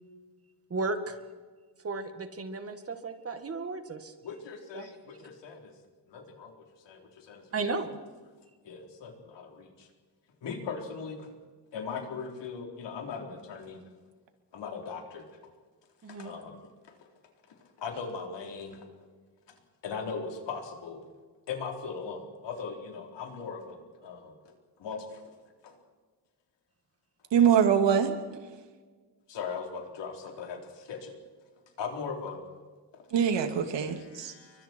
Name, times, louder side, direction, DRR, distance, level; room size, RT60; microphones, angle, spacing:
voice 1, 0.7-1.2 1.8-4.1 4.7-4.9 7.5-7.9 16.0-16.3, right 3 dB, 35° right, 8 dB, 2.0 m, -34 dB
voice 2, 4.2-5.7 6.1-7.8 8.6-9.9 10.4-11.3 11.7-13.8 14.5-15.3 16.1-16.6 16.9-17.1 17.5-19.1 19.8-21.0 21.5-25.4 25.6-25.8 29.3-31.2 31.8-32.4 32.9-33.1 33.8-34.6, left 5 dB, 80° left, 3 dB, 4.2 m, -39 dB
voice 3, 27.3-28.1 33.1-34.3, right 8 dB, 85° right, 6 dB, 2.7 m, -23 dB
30.0 x 24.0 x 4.7 m, 1.4 s
wide cardioid pair, 150°, 42 cm